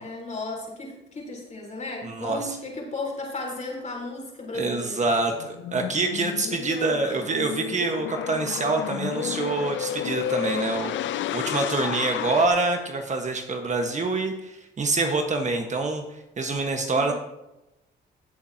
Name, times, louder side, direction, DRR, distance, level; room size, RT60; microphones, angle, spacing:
voice 1, 0.0-5.0 6.4-7.3 16.9-17.1, left 2 dB, 35° left, -1 dB, 3.9 m, -35 dB
voice 2, 2.0-2.6 4.5-16.0 16.4-17.1, right 3 dB, 35° right, 3 dB, 1.4 m, -26 dB
sound 1, 5.2-12.5, left 11 dB, 70° left, 0.5 m, -31 dB
16.5 x 7.3 x 2.9 m, 0.92 s
cardioid pair, 90°, 20 cm